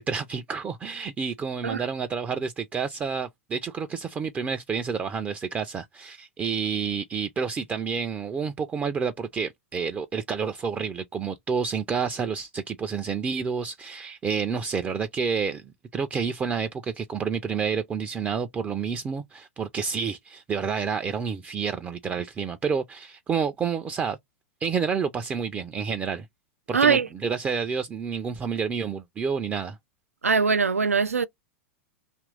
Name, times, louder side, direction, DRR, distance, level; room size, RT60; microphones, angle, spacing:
voice 1, 0.0-15.6 15.9-24.2 24.6-26.3 26.7-29.8, right 6 dB, 20° right, 0.4 m, -29 dB
voice 2, 26.7-27.1 30.2-31.3, right 5 dB, 90° right, 0.3 m, -21 dB
2.9 x 2.5 x 3.2 m
figure-of-eight pair, 100°, 8 cm